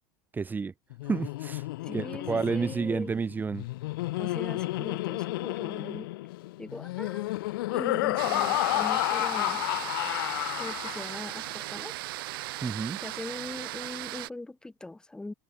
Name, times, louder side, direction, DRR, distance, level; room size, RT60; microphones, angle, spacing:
voice 1, 0.3-0.7 1.0-1.6 1.9-3.6 12.6-13.0, right 5 dB, 15° right, 3.0 m, -30 dB
Laughter, 0.9-11.4, left 19 dB, 80° left, 4.0 m, -31 dB
voice 2, 1.8-3.1 4.2-6.1 6.6-7.3 7.7-9.6 10.6-11.9 13.0-15.3, left 2 dB, 5° left, 3.4 m, -41 dB
sound 1, 8.2-14.3, right 18 dB, 80° right, 1.9 m, -37 dB
supercardioid pair, 140°, 12 cm